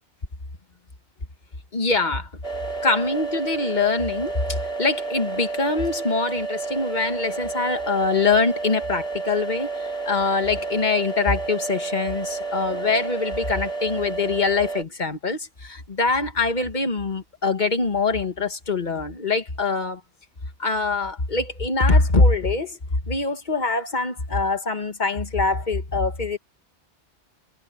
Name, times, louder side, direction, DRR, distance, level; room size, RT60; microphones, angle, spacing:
voice 1, 1.7-2.3 2.8-20.0 20.6-22.8 23.0-26.4, left 3 dB, 45° left, 1.7 m, -23 dB
sound 1, 2.4-14.8, right 3 dB, 60° left, 4.0 m, -30 dB
omnidirectional pair, 1.1 m